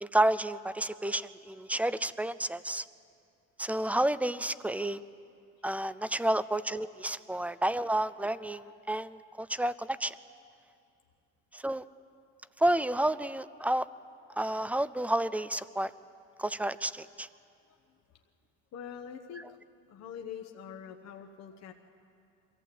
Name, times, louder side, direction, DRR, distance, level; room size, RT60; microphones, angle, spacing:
voice 1, 0.0-2.8 3.6-5.0 5.6-10.1 11.5-11.8 12.6-13.9 14.4-15.9 16.4-17.3, right 1 dB, 5° right, 16 dB, 0.4 m, -30 dB
voice 2, 18.7-19.6 19.9-21.7, left 8 dB, 55° left, 4 dB, 1.1 m, -45 dB
23.0 x 15.0 x 8.5 m, 2.5 s
cardioid pair, 105°, 30 cm